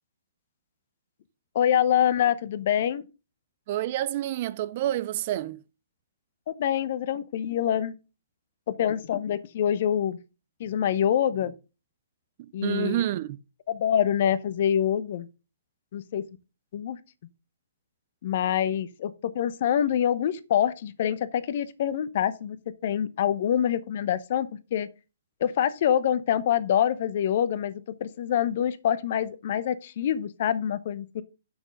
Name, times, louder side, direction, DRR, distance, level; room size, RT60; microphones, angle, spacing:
voice 1, 1.5-3.0 6.5-7.9 8.8-10.2 10.6-11.5 12.5-13.0 13.7-15.3 15.9-16.2 16.7-17.0 18.2-22.6 22.8-24.9 25.4-31.2, left 9 dB, 50° left, 0.8 m, -25 dB
voice 2, 3.7-5.6 12.4-13.3, right 13 dB, 45° right, 0.5 m, -28 dB
6.2 x 6.1 x 6.4 m
hypercardioid pair, 130°, 0 cm